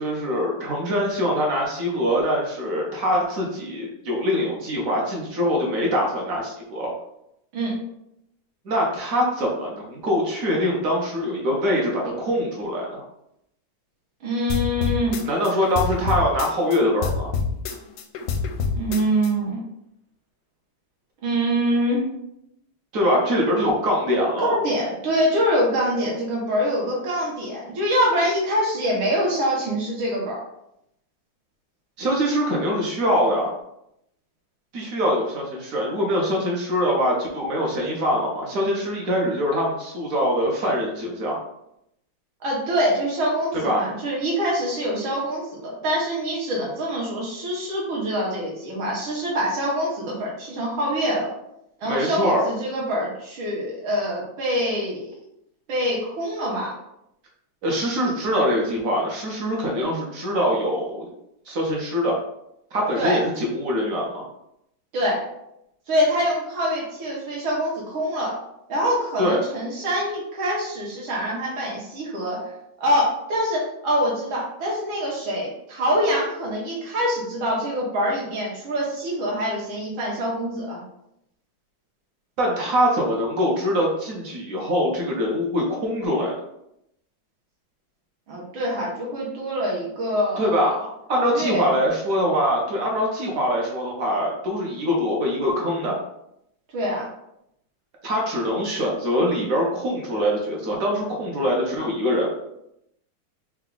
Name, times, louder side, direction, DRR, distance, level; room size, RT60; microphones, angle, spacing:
voice 1, 0.0-6.9 8.6-13.0 15.3-17.3 22.9-24.6 32.0-33.5 34.7-41.4 43.6-43.8 51.8-52.5 57.6-61.1 61.5-62.1 62.7-64.3 69.2-69.4 82.4-86.3 90.4-90.8 91.1-96.0 98.0-102.3, equal, 55° right, -2 dB, 1.0 m, -23 dB
voice 2, 14.2-15.2 18.7-19.6 21.2-22.1 24.4-30.4 42.4-51.3 51.8-55.2 55.7-56.7 63.0-63.2 64.9-65.2 65.9-68.4 68.7-72.4 72.8-80.8 88.3-90.7 91.1-91.7 96.7-97.1, equal, 75° right, -4 dB, 1.9 m, -25 dB
sound 1, 14.5-16.8 17.0-19.3, left 5 dB, 75° left, 1.1 m, -26 dB
4.5 x 2.3 x 3.8 m, 0.79 s
omnidirectional pair, 2.3 m